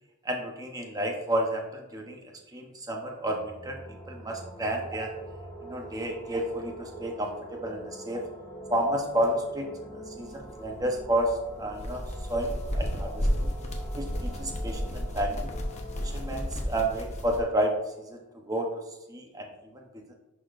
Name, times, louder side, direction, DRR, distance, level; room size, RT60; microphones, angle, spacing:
voice 1, 0.2-5.1 5.6-8.2 8.7-12.0 12.3-13.5 13.9-15.5 16.0-17.8 18.1-18.8 19.1-19.9, right 1 dB, 15° right, 2 dB, 0.8 m, -31 dB
sound 1, 3.1-18.6, right 1 dB, 15° left, 1.1 m, -45 dB
sound 2, 10.2-17.4, equal, 35° left, 0.8 m, -33 dB
10.5 x 4.3 x 2.5 m, 1.0 s
head